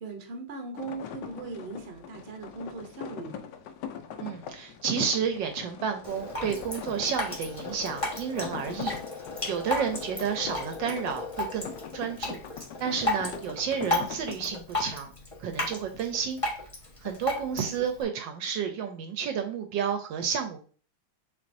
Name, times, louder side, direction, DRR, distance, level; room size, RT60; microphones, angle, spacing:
voice 1, 0.0-3.4, right 3 dB, 55° right, 0.7 m, -39 dB
sound 1, 0.8-14.6, left 7 dB, 75° left, 1.0 m, -42 dB
voice 2, 4.2-8.9 9.5-12.4 12.8-15.1 15.4-16.4 17.0-20.6, right 7 dB, 75° right, 1.2 m, -31 dB
Drip, 6.0-18.0, left 2 dB, 25° left, 0.7 m, -34 dB
6.6 x 3.0 x 2.6 m
omnidirectional pair, 2.3 m